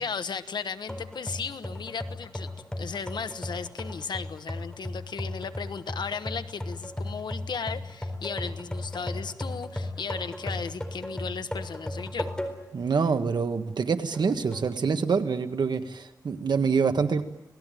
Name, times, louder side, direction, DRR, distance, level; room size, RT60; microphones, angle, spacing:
voice 1, 0.0-12.3, left 5 dB, 90° left, 11 dB, 1.1 m, -35 dB
sound 1, 0.9-12.8 13.3-13.4 14.1-14.7, left 1 dB, 10° left, 4.2 m, -36 dB
voice 2, 12.7-17.2, right 5 dB, 80° right, 8 dB, 1.6 m, -26 dB
28.0 x 18.5 x 9.2 m, 1.0 s
wide cardioid pair, 105°, 7 cm